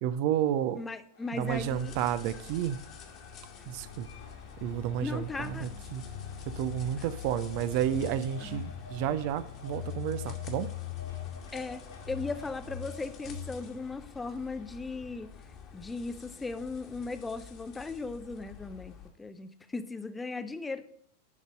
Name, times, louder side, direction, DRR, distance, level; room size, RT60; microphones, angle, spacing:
voice 1, 0.0-0.8 1.4-2.8 3.7-4.1 4.6-6.0 6.6-10.7, right 10 dB, 45° right, 0.4 m, -31 dB
voice 2, 0.8-2.0 5.0-5.7 6.9-7.0 8.4-8.6 11.5-15.3 15.7-20.9, left 3 dB, 10° left, 0.5 m, -37 dB
Train, 1.1-13.0, left 4 dB, 70° left, 1.6 m, -55 dB
sound 1, 1.4-19.1, left 8 dB, 35° left, 1.4 m, -47 dB
Telephone, 7.5-9.3 9.6-13.7, left 8 dB, 85° right, 1.3 m, -41 dB
10.5 x 4.0 x 5.1 m
figure-of-eight pair, 90°, 0 cm